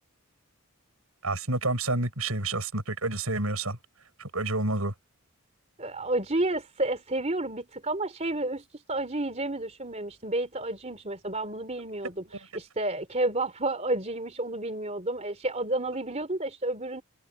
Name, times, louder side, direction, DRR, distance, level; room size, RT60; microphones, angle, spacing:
voice 1, 1.2-3.8 4.2-4.9, right 2 dB, 75° right, 6.8 m, -29 dB
voice 2, 5.8-12.2 12.5-17.0, right 2 dB, 30° right, 3.4 m, -31 dB
head